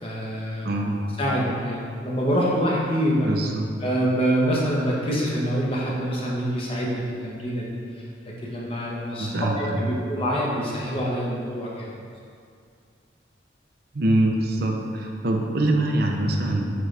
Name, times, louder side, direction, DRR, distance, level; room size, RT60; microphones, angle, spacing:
voice 1, 0.0-0.7 1.2-3.3 3.8-7.8 8.4-9.3 9.6-11.9, equal, 30° left, -4 dB, 1.1 m, -25 dB
voice 2, 0.6-1.0 3.2-3.7 9.2-9.9 13.9-16.7, right 1 dB, 50° right, 1 dB, 0.6 m, -24 dB
10.5 x 4.0 x 3.4 m, 2.3 s
head